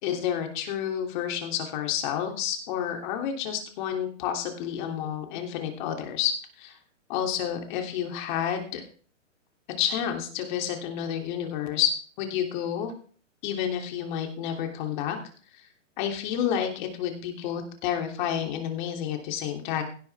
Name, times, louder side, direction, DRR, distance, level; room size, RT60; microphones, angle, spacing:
voice 1, 0.0-6.8 7.1-8.8 9.8-12.9 13.4-15.2 15.6-15.7 16.0-19.8, left 9 dB, 35° left, 3 dB, 3.2 m, -30 dB
17.5 x 10.5 x 3.6 m, 0.43 s
hypercardioid pair, 145°, 39 cm